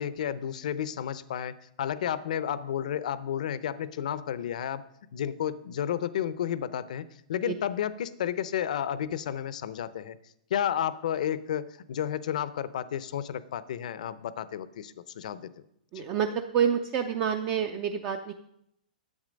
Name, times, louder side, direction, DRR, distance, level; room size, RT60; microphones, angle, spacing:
voice 1, 0.0-4.8 5.1-10.2 10.5-15.5 15.9-16.1, left 9 dB, 55° left, 16 dB, 0.7 m, -32 dB
voice 2, 15.9-18.3, right 8 dB, 20° right, 7 dB, 0.5 m, -28 dB
11.0 x 8.3 x 5.2 m, 0.76 s
hypercardioid pair, 170°, 5 cm